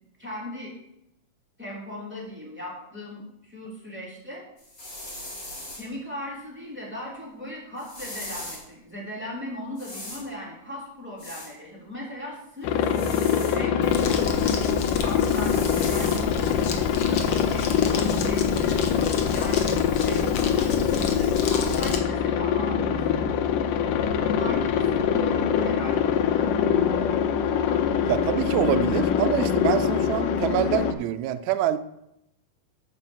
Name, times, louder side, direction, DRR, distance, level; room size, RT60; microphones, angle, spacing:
voice 1, 0.2-0.7 1.6-4.4 5.7-12.7 13.4-16.6 17.0-18.8 19.3-19.6 20.0-20.2 20.5-23.5 24.1-26.5, left 1 dB, 5° right, -5 dB, 2.7 m, -38 dB
sound 1, 4.6-5.9 7.8-8.6 9.8-10.3 11.2-11.5 12.8-13.6 14.8-16.2, left 1 dB, 20° left, 3.4 m, -39 dB
Aircraft, 12.6-30.9, left 7 dB, 80° left, 2.2 m, -24 dB
Crumpling crinkling, 13.8-22.0, left 4 dB, 65° left, 1.2 m, -33 dB
voice 2, 28.1-31.8, right 12 dB, 75° right, 10 dB, 1.8 m, -25 dB
9.6 x 5.4 x 7.1 m, 0.84 s
omnidirectional pair, 3.8 m